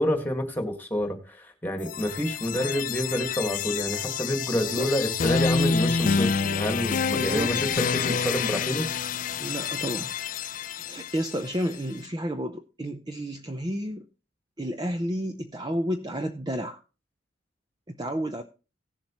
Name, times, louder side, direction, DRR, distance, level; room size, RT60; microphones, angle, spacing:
voice 1, 0.0-8.9, equal, 10° left, 4 dB, 1.6 m, -28 dB
sound 1, 1.8-11.7, left 5 dB, 40° left, 0.4 m, -28 dB
voice 2, 4.5-4.9 7.1-7.6 9.4-10.1 10.9-14.1 14.6-16.8 17.9-18.4, equal, 20° right, 6 dB, 0.6 m, -31 dB
17.0 x 7.4 x 3.0 m, 0.33 s
head